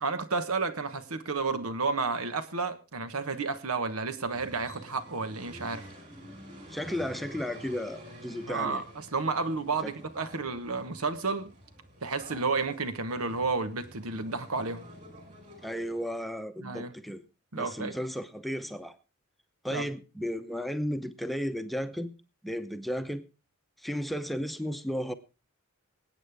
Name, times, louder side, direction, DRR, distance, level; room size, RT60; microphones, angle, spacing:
voice 1, 0.0-5.9 8.5-11.5 12.0-14.8 16.6-16.9 17.5-17.9 19.7-19.9, right 4 dB, 90° right, 1.3 m, -31 dB
sound 1, 4.3-16.0, equal, 35° right, 4.6 m, -49 dB
voice 2, 6.7-8.8 9.8-9.9 15.6-17.2 17.5-19.0 19.6-22.1 22.4-23.2 23.8-25.1, equal, ahead, 0.7 m, -34 dB
25.0 x 8.6 x 3.5 m
head